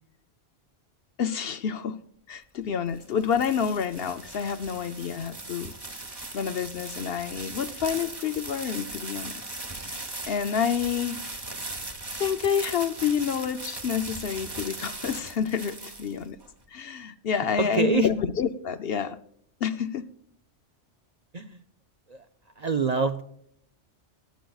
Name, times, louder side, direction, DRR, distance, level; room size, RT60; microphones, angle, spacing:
voice 1, 1.2-2.0 2.3-5.7 6.3-9.4 9.8-11.4 12.1-16.4 16.7-19.2 19.6-20.1, left 7 dB, 60° left, 12 dB, 0.8 m, -28 dB
sound 1, 2.7-16.5, right 2 dB, 20° right, 1.0 m, -38 dB
voice 2, 17.6-18.1 21.3-21.6 22.1-22.2 22.6-23.2, right 4 dB, 50° right, 8 dB, 0.5 m, -26 dB
19.5 x 9.1 x 2.3 m, 0.68 s
omnidirectional pair, 1.2 m